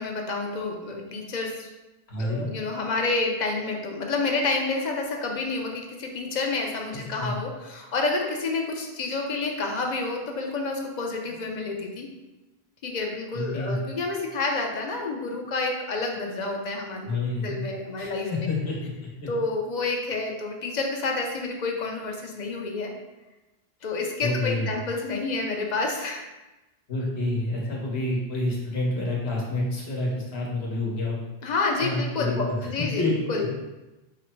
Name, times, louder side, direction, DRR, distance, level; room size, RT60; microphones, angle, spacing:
voice 1, 0.0-1.7 2.2-12.1 12.8-17.1 17.4-18.5 19.3-22.9 23.8-26.2 31.4-33.0 33.3-33.5, left 3 dB, 50° left, 2 dB, 0.7 m, -29 dB
voice 2, 2.1-2.4 6.9-7.4 13.3-13.8 17.0-17.6 18.0-18.8 19.2-19.3 24.2-24.7 26.9-31.2 31.8-32.7 33.0-33.5, left 2 dB, 80° left, -3 dB, 1.3 m, -28 dB
5.0 x 2.1 x 4.4 m, 1.1 s
omnidirectional pair, 1.1 m